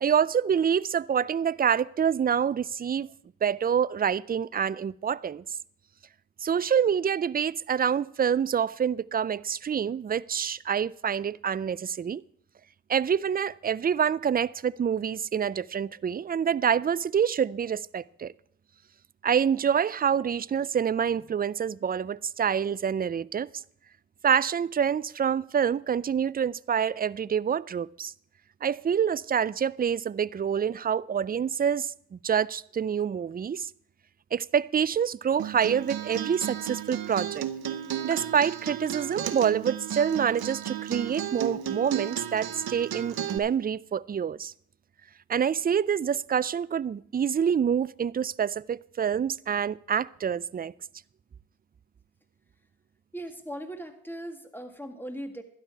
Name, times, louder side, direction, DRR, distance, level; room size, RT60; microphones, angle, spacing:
voice 1, 0.0-3.1 3.4-5.4 6.4-12.2 12.9-18.3 19.2-23.5 24.2-28.1 28.6-33.7 34.3-37.5 38.0-44.5 45.3-50.7, right 8 dB, 25° right, 0.3 m, -27 dB
Acoustic guitar, 35.4-43.4, right 10 dB, 75° right, 0.9 m, -34 dB
voice 2, 53.1-55.4, right 1 dB, 5° left, 1.9 m, -39 dB
12.0 x 10.5 x 4.7 m
supercardioid pair, 40°, 37 cm